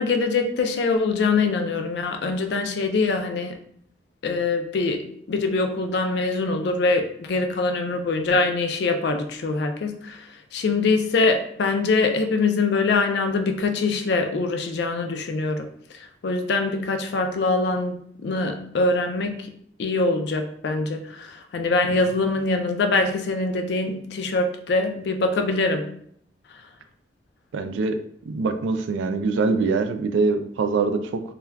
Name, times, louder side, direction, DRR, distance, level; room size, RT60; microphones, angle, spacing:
voice 1, 0.0-3.6 4.2-10.2 10.5-15.7 16.2-18.0 18.2-19.5 19.8-25.9, left 3 dB, 65° left, 6 dB, 0.4 m, -23 dB
voice 2, 27.5-28.0 28.3-31.2, right 4 dB, 90° right, 8 dB, 0.3 m, -23 dB
2.3 x 2.2 x 3.3 m, 0.65 s
head